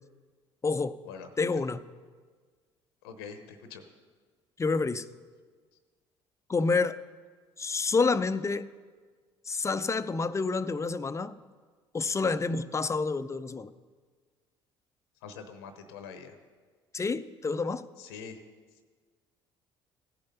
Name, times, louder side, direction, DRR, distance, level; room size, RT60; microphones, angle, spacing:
voice 1, 0.6-1.0 1.4-1.8 4.6-5.1 6.5-7.0 7.6-8.7 9.5-11.3 11.9-13.7 16.9-17.8, left 4 dB, 25° left, 14 dB, 0.5 m, -28 dB
voice 2, 3.0-3.8 15.2-16.4 18.0-18.4, left 6 dB, 85° left, 8 dB, 0.8 m, -44 dB
15.5 x 5.3 x 5.7 m, 1.5 s
hypercardioid pair, 60°, 13 cm